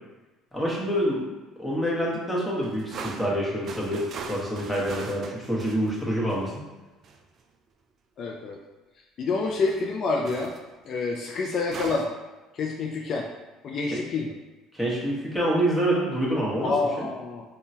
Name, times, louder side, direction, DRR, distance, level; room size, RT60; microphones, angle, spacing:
voice 1, 0.5-1.2 1.6-6.5 13.9-14.0 14.7-16.7 17.0-17.1, right 1 dB, ahead, -6 dB, 1.2 m, -26 dB
sound 1, 2.5-6.6 7.0-7.2 9.4-10.0 10.2-10.7 11.6-12.1, right 5 dB, 50° right, 0.3 m, -40 dB
voice 2, 8.2-8.6 9.2-10.5 10.9-12.1 12.5-13.3 13.6-14.3 16.6-17.4, left 3 dB, 50° left, 0 dB, 0.4 m, -27 dB
3.6 x 2.2 x 2.8 m, 1.2 s
supercardioid pair, 80°, 0 cm